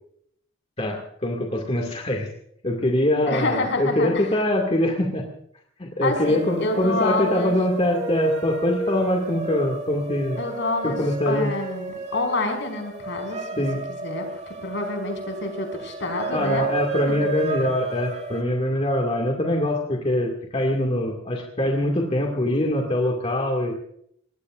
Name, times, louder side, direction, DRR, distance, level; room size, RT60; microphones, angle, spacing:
voice 1, 0.8-2.3 2.6-5.2 5.8-10.4 10.8-11.5 13.6-13.8 16.3-23.7, left 1 dB, 30° left, 0 dB, 2.3 m, -23 dB
voice 2, 3.3-4.3 6.0-7.5 10.4-16.7 17.1-17.3, left 2 dB, 60° left, 3 dB, 5.4 m, -28 dB
sound 1, 6.2-18.4, right 3 dB, 35° right, 2.3 m, -32 dB
25.5 x 20.0 x 2.6 m, 0.69 s
head